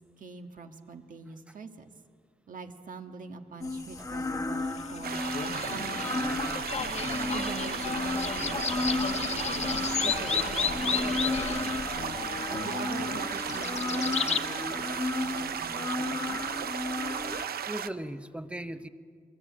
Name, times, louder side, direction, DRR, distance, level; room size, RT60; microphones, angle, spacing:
voice 1, 0.2-1.9 2.5-5.3 5.7-6.6 7.3-11.8 12.5-14.9 15.2-16.4, right 4 dB, 60° right, 6 dB, 1.5 m, -44 dB
sound 1, 3.6-17.5, left 2 dB, 20° left, 1.2 m, -34 dB
sound 2, 4.8-14.4, left 6 dB, 45° left, 1.0 m, -33 dB
sound 3, 5.0-17.9, right 9 dB, 85° right, 0.7 m, -35 dB
voice 2, 17.3-18.9, right 1 dB, 5° right, 10 dB, 0.7 m, -38 dB
26.5 x 20.5 x 8.6 m, 2.1 s
wide cardioid pair, 160°, 15 cm